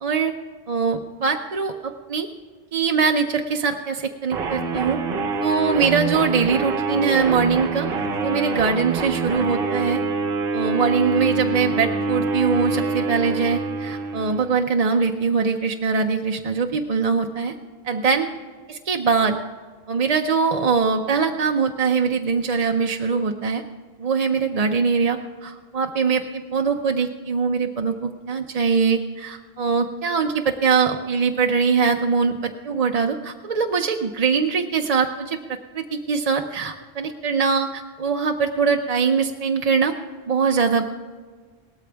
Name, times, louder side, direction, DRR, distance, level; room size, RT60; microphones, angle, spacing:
voice 1, 0.0-0.3 0.7-2.3 2.7-5.0 5.4-7.9 8.2-10.0 10.5-17.5 17.8-18.3 18.7-19.4 19.9-23.6 24.0-39.9 40.3-40.9, right 5 dB, 45° right, 4 dB, 0.6 m, -22 dB
sound 1, 4.3-14.6, right 4 dB, 60° right, 1.0 m, -25 dB
18.0 x 13.5 x 3.4 m, 1.5 s
omnidirectional pair, 1.0 m